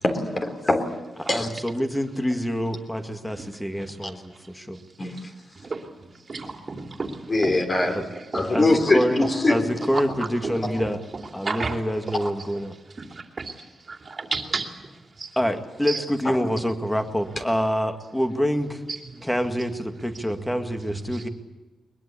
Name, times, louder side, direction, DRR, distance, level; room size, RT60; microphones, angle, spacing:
voice 1, 0.0-0.9 1.3-1.5 4.0-4.1 5.0-5.1 7.3-8.0 8.3-9.7, left 2 dB, 30° left, 6 dB, 3.5 m, -22 dB
voice 2, 1.2-4.8 7.9-8.0 8.4-11.0 11.3-12.7 15.4-18.8 19.2-21.3, equal, 5° left, 7 dB, 2.0 m, -26 dB
voice 3, 6.3-7.5 8.3-8.4 9.9-10.0 10.4-10.5 11.4-11.8 12.2-12.3 13.0-13.1 13.4-13.5 13.9-14.7 15.2-15.3 15.9-16.0, right 4 dB, 35° right, 4 dB, 2.9 m, -30 dB
22.0 x 21.5 x 8.5 m, 1.2 s
wide cardioid pair, 145°, 0 cm